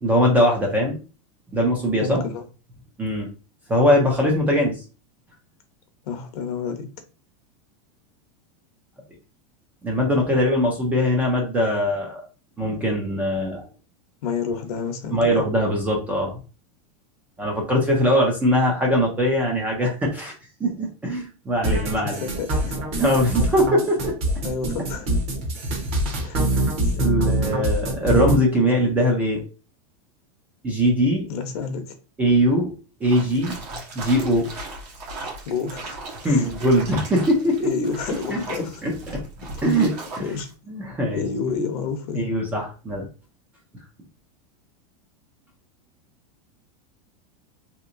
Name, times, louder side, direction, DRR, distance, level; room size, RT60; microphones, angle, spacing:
voice 1, 0.0-1.0 1.5-2.2 3.0-3.3 3.7-4.8 9.8-12.3 12.6-13.6 15.1-16.4 17.4-20.3 20.6-22.2 23.0-24.1 26.5-29.4 30.6-31.3 32.2-32.7 33.0-33.6 33.9-34.5 36.2-37.7 38.3-38.4 38.8-39.2 39.6-40.4 40.7-41.2 42.1-43.1, equal, 10° right, 0.3 m, -21 dB
voice 2, 2.0-2.4 6.0-6.9 14.2-15.4 22.0-22.8 24.4-25.1 26.2-26.5 26.8-27.0 31.3-32.0 35.5-35.9 36.2-36.5 37.6-38.9 40.2-40.5 41.1-42.3, left 5 dB, 70° left, 0.7 m, -29 dB
sound 1, 21.6-28.4, right 1 dB, 30° right, 0.8 m, -24 dB
sound 2, 33.0-40.5, right 2 dB, 85° right, 1.3 m, -37 dB
3.1 x 2.8 x 2.5 m
supercardioid pair, 180°, 20 cm